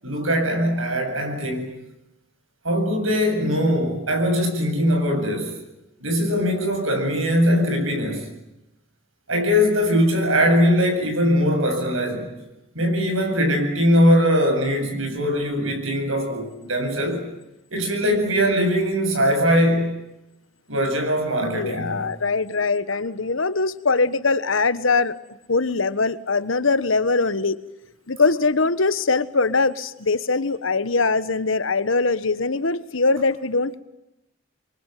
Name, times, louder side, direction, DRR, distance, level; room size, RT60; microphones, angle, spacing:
voice 1, 0.0-1.7 2.6-5.5 6.0-8.3 9.3-12.3 12.7-17.3 17.7-19.9 20.7-22.0, equal, 90° right, 4 dB, 7.8 m, -21 dB
voice 2, 18.0-18.4 21.4-25.1 25.5-27.6 28.1-33.8, left 3 dB, 80° left, 15 dB, 1.3 m, -22 dB
27.0 x 23.5 x 9.3 m, 0.93 s
head